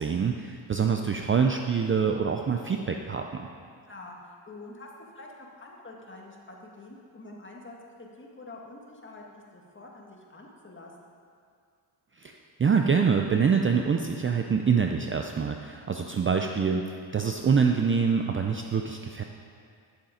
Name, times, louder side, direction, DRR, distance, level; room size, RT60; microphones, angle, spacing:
voice 1, 0.0-3.5 12.2-16.8 17.1-19.2, right 6 dB, 25° right, 4 dB, 0.5 m, -25 dB
voice 2, 3.8-4.9 5.1-11.1, left 2 dB, 25° left, -1 dB, 1.8 m, -46 dB
10.0 x 7.2 x 5.1 m, 2.2 s
cardioid pair, 90°, 46 cm